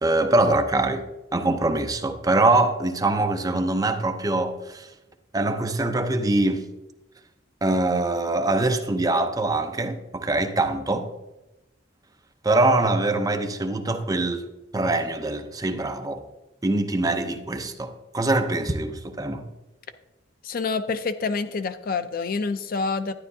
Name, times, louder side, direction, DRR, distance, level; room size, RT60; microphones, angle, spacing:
voice 1, 0.0-1.1 1.3-4.9 5.3-6.7 7.6-11.1 12.4-14.4 14.7-16.3 16.6-19.4, right 2 dB, 20° right, 0.6 m, -23 dB
voice 2, 20.4-23.1, left 4 dB, 50° left, 0.5 m, -27 dB
11.5 x 10.0 x 2.7 m
head